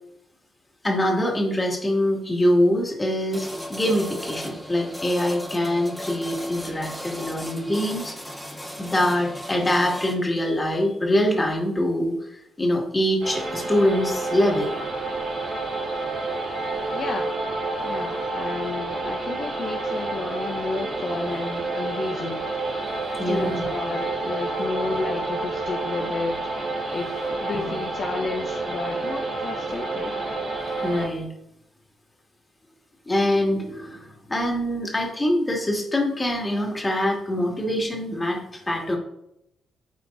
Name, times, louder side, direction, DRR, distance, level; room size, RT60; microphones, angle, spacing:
voice 1, 0.8-8.1 8.8-14.7 23.2-23.7 27.5-27.7 30.8-31.3 33.1-39.0, left 1 dB, 25° left, 0 dB, 2.3 m, -24 dB
sound 1, 3.3-10.2, equal, 5° left, 1.5 m, -36 dB
sound 2, 13.2-31.1, right 2 dB, 60° right, 2.8 m, -29 dB
voice 2, 16.9-17.3 17.8-22.5 23.2-26.5 26.9-30.1, left 3 dB, 55° left, 2 dB, 0.8 m, -32 dB
12.5 x 4.4 x 2.7 m, 0.82 s
hypercardioid pair, 50°, 0 cm